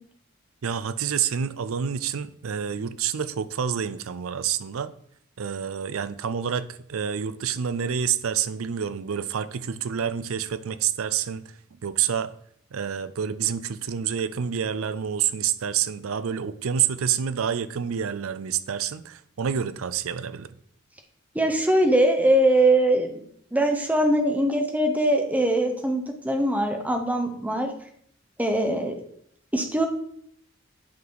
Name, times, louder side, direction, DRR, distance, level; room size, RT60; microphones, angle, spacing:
voice 1, 0.6-4.9 5.4-11.5 11.8-12.3 12.7-20.5, right 8 dB, 80° right, 0.5 m, -28 dB
voice 2, 21.3-23.2 23.5-27.7 28.4-28.9 29.5-29.9, right 1 dB, 5° right, 0.9 m, -22 dB
8.3 x 4.7 x 4.0 m
head